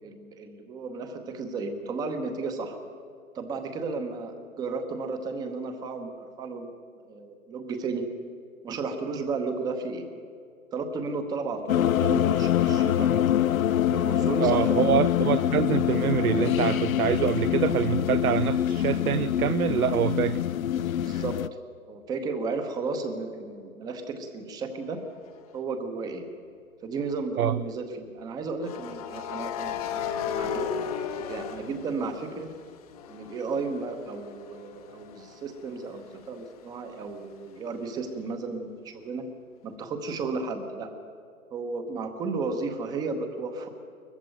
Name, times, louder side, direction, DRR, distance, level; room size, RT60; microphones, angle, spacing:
voice 1, 0.0-2.8 3.3-6.7 7.0-8.0 8.6-10.1 10.7-13.4 13.9-15.1 21.0-21.4 21.9-25.0 25.5-26.2 26.8-30.9 31.3-32.5 33.1-39.2 39.6-40.9 41.5-43.7, right 4 dB, 10° right, 7 dB, 0.9 m, -33 dB
sound 1, 11.7-21.5, left 10 dB, 70° left, 0.6 m, -25 dB
voice 2, 14.4-20.4 27.4-27.6, right 10 dB, 80° right, 16 dB, 0.6 m, -25 dB
sound 2, 25.3-25.5 28.6-32.5 32.9-36.5, left 7 dB, 25° left, 0.9 m, -35 dB
20.0 x 14.5 x 9.1 m, 2.4 s
hypercardioid pair, 150°, 43 cm